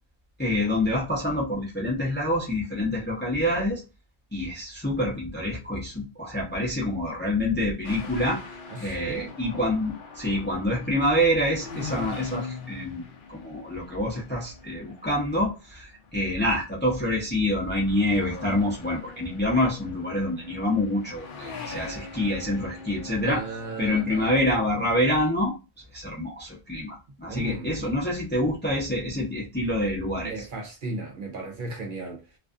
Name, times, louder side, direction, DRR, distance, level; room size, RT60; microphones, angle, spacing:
voice 1, 0.4-3.8 4.3-8.4 8.8-13.0 13.3-23.5 23.8-25.5 25.9-30.4, left 1 dB, 15° left, 0.5 m, -26 dB
sound 1, 7.8-16.2 16.8-17.2 17.5-24.3, left 4 dB, 60° left, 0.7 m, -42 dB
voice 2, 8.7-9.3 23.2-24.3 27.3-28.0 29.7-29.9 30.2-32.2, right 2 dB, 60° right, 0.8 m, -36 dB
2.4 x 2.3 x 2.4 m
omnidirectional pair, 1.1 m